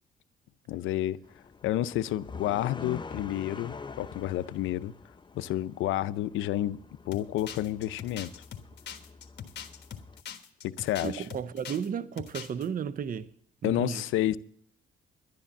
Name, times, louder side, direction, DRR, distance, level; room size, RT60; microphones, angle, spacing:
voice 1, 0.7-1.2 1.6-4.9 5.3-8.3 10.6-11.2 13.6-14.4, left 13 dB, 85° left, 0.5 m, -30 dB
sound 1, 1.2-10.2, left 4 dB, 25° left, 0.6 m, -46 dB
sound 2, 7.1-11.9 12.2-12.7, left 8 dB, 60° left, 1.4 m, -42 dB
voice 2, 11.0-13.3 13.6-14.0, right 7 dB, 45° right, 0.7 m, -33 dB
11.0 x 10.0 x 7.1 m
cardioid pair, 90°, 20 cm